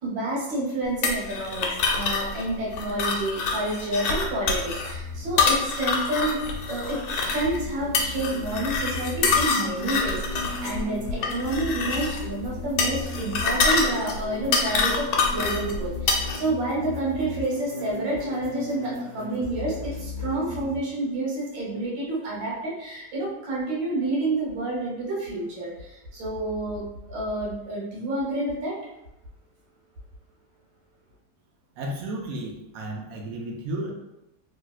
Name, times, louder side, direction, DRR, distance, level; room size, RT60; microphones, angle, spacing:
voice 1, 0.0-28.8, right 2 dB, 90° right, -4 dB, 1.7 m, -29 dB
sound 1, 1.0-16.4, left 4 dB, 80° left, 1.2 m, -26 dB
sound 2, 4.1-20.8, left 2 dB, 15° right, 1.2 m, -37 dB
voice 2, 31.8-33.9, right 1 dB, 70° right, 0 dB, 0.9 m, -33 dB
3.3 x 2.6 x 2.3 m, 0.90 s
omnidirectional pair, 1.9 m